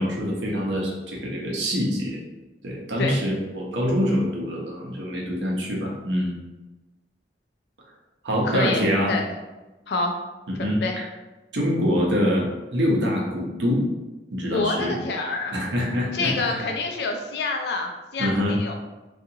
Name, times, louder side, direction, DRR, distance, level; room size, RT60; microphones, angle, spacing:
voice 1, 0.0-2.2 2.6-6.3 8.2-9.1 10.5-10.8 11.5-13.8 14.3-15.0 15.5-16.6 18.2-18.6, equal, 85° right, -2 dB, 0.7 m, -25 dB
voice 2, 8.4-9.2 9.9-10.1 10.6-11.0 14.5-15.5 16.1-18.7, left 3 dB, 65° left, 2 dB, 0.4 m, -27 dB
2.7 x 2.4 x 2.7 m, 1.1 s
head